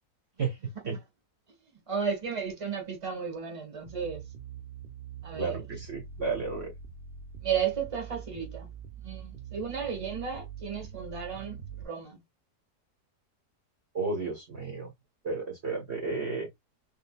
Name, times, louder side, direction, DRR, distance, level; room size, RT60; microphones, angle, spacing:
voice 1, 0.4-1.0 5.4-6.7 13.9-14.9 15.2-16.5, right 4 dB, 40° right, 1.6 m, -32 dB
voice 2, 1.9-4.2 5.2-5.6 7.4-8.7 9.0-12.2, right 7 dB, 20° right, 1.6 m, -34 dB
sound 1, 3.8-11.8, right 7 dB, 65° right, 0.5 m, -44 dB
3.8 x 3.5 x 2.3 m
omnidirectional pair, 1.8 m